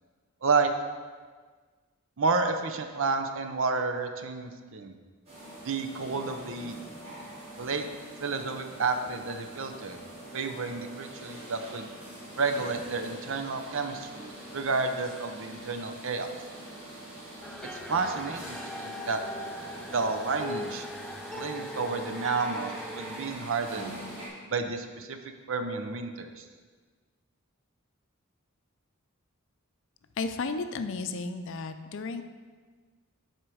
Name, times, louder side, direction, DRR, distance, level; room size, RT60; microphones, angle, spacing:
voice 1, 0.4-0.7 2.2-4.9 5.6-6.7 7.6-7.9 8.2-10.0 10.3-11.9 12.4-16.3 17.7-19.2 19.9-20.8 21.3-23.9 24.5-25.2 25.5-26.4, right 4 dB, 60° right, 7 dB, 0.6 m, -30 dB
sound 1, 5.3-24.3, right 1 dB, 30° right, 2.3 m, -44 dB
sound 2, 17.4-23.4, left 1 dB, 5° left, 0.4 m, -40 dB
voice 2, 30.2-32.2, left 3 dB, 60° left, 9 dB, 0.5 m, -33 dB
7.9 x 4.5 x 6.2 m, 1.5 s
head